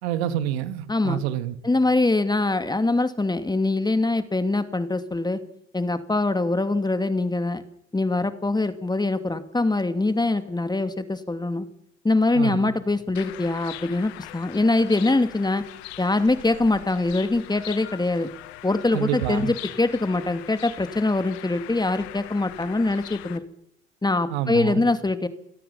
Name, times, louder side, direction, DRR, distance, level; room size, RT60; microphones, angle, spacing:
voice 1, 0.0-1.6 12.3-12.7 18.9-19.5 24.3-24.9, right 11 dB, 75° right, 2.0 m, -28 dB
voice 2, 0.9-1.2 1.6-5.4 5.7-7.6 7.9-11.7 12.0-15.6 16.0-18.3 18.6-23.4 24.0-25.3, left 2 dB, 10° left, 2.6 m, -23 dB
sound 1, 13.1-23.4, left 15 dB, 75° left, 1.8 m, -41 dB
28.0 x 18.0 x 5.7 m
hypercardioid pair, 65°, 33 cm